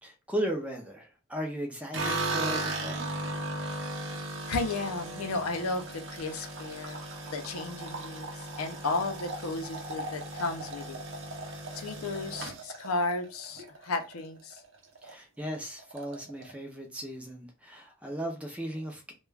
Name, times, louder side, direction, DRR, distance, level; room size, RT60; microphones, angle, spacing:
voice 1, 0.0-3.1 15.0-19.1, equal, 5° right, 0.4 m, -36 dB
sound 1, 1.9-14.2 14.5-15.1 15.4-15.5 15.8-16.5, right 2 dB, 60° right, 0.6 m, -37 dB
voice 2, 4.5-8.3 8.6-11.0 11.7-14.6, left 3 dB, 85° left, 0.5 m, -34 dB
2.3 x 2.2 x 3.2 m
head